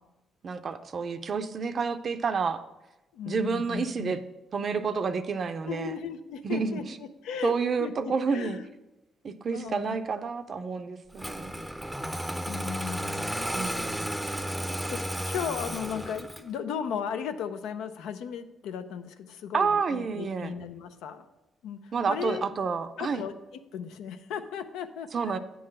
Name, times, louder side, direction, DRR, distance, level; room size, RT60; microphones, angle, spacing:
voice 1, 0.4-2.6 3.3-4.2 4.5-5.9 6.4-7.0 7.4-8.6 9.2-11.6 13.5-14.1 19.5-20.5 21.9-23.2 25.1-25.4, right 5 dB, 50° right, 9 dB, 0.5 m, -29 dB
voice 2, 3.1-4.1 5.7-6.8 7.2-7.5 7.8-8.7 9.5-10.0 12.4-13.4 13.9-14.0 14.9-21.2 21.6-22.5 23.0-25.4, left 7 dB, 90° left, 8 dB, 0.6 m, -36 dB
Engine starting, 11.2-16.6, equal, ahead, 0.6 m, -33 dB
9.2 x 3.9 x 6.4 m, 1.0 s
cardioid pair, 90°, 0 cm